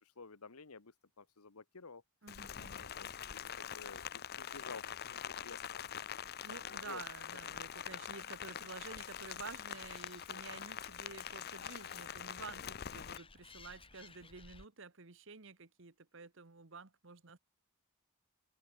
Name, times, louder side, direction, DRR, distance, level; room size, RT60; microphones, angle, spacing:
voice 1, 0.0-2.0 2.8-6.0 6.8-7.0, left 4 dB, 80° left, 1.3 m, -53 dB
voice 2, 2.2-2.9 6.4-17.4, right 4 dB, 55° right, 1.3 m, -51 dB
Rain, 2.3-13.2, left 9 dB, 45° left, 0.6 m, -44 dB
Animal, 8.8-14.6, left 3 dB, 25° left, 6.5 m, -60 dB
head